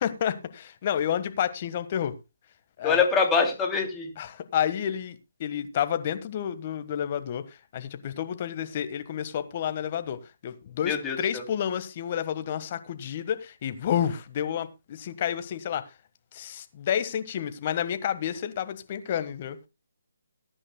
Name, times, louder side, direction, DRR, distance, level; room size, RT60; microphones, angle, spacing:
voice 1, 0.0-2.1 2.8-3.1 4.2-10.2 10.4-15.8 16.3-19.6, left 9 dB, 35° left, 1.5 m, -30 dB
voice 2, 2.8-4.1 10.8-11.4, left 5 dB, 10° left, 2.9 m, -24 dB
20.5 x 9.9 x 2.2 m
figure-of-eight pair, 150°, 0 cm